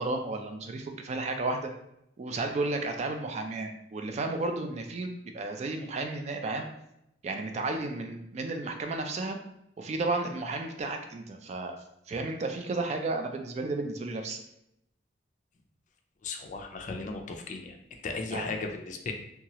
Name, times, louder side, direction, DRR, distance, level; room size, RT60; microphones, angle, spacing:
voice 1, 0.0-1.7 2.2-6.7 7.2-9.4 9.8-11.8 12.1-14.4 18.3-18.5, right 2 dB, 40° right, 4 dB, 0.3 m, -33 dB
voice 2, 16.2-19.1, left 3 dB, 45° left, 4 dB, 0.4 m, -36 dB
2.9 x 2.3 x 2.8 m, 0.80 s
head